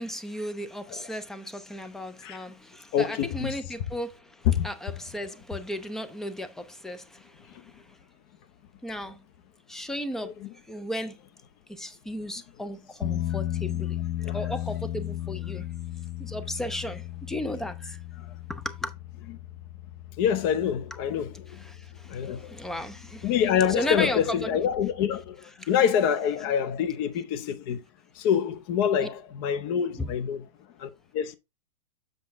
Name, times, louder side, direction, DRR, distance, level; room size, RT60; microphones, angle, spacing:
voice 1, 0.0-4.2 4.6-7.0 8.8-9.2 9.7-10.3 10.7-11.2 11.8-14.0 14.3-15.6 16.2-17.0 17.3-18.0 18.5-18.9 21.6-21.8 22.5-23.4 23.7-24.5 25.6-25.7 29.0-29.1 30.0-30.1, equal, ahead, 0.4 m, -34 dB
voice 2, 2.9-3.5 4.5-4.7 10.2-10.5 14.2-14.4 20.2-21.6 22.1-22.5 23.2-27.8 28.2-30.4 30.8-31.4, left 8 dB, 35° left, 0.8 m, -26 dB
sound 1, 13.0-25.3, left 13 dB, 65° left, 1.2 m, -36 dB
7.7 x 5.2 x 3.4 m
hypercardioid pair, 150°, 21 cm